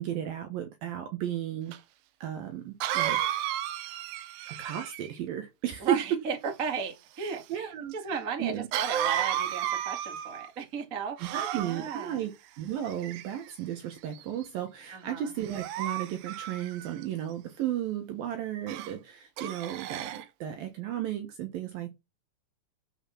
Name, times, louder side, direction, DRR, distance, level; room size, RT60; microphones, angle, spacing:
voice 1, 0.0-1.8 2.2-3.2 4.5-6.0 7.5-8.0 8.4-8.7 11.3-12.3 12.6-22.0, right 11 dB, 65° right, 2.6 m, -34 dB
Cough, 1.7-1.8 2.8-5.2 8.7-10.5 11.2-12.1 12.9-13.5 14.1-14.4 15.4-17.0 18.7-18.9 19.4-20.3, right 11 dB, 85° right, 2.0 m, -33 dB
voice 2, 5.8-12.2 14.9-15.3, right 6 dB, 30° right, 1.7 m, -35 dB
9.1 x 6.6 x 6.0 m
omnidirectional pair, 5.0 m